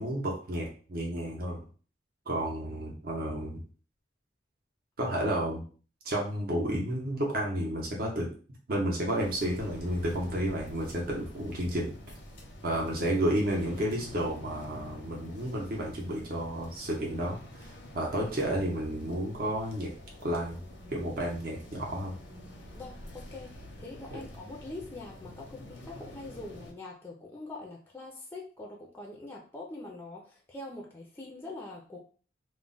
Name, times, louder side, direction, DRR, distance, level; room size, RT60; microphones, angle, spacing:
voice 1, 0.0-1.6 2.3-3.6 5.0-5.6 6.0-8.3 8.7-11.9 12.6-19.9 20.2-20.6 20.9-22.1 24.1-24.2, right 1 dB, 55° right, -2 dB, 0.7 m, -31 dB
sound 1, 9.1-26.7, left 1 dB, 85° left, 0.6 m, -47 dB
voice 2, 22.7-32.0, left 2 dB, 10° left, -1 dB, 0.4 m, -44 dB
2.3 x 2.1 x 3.7 m, 0.39 s
head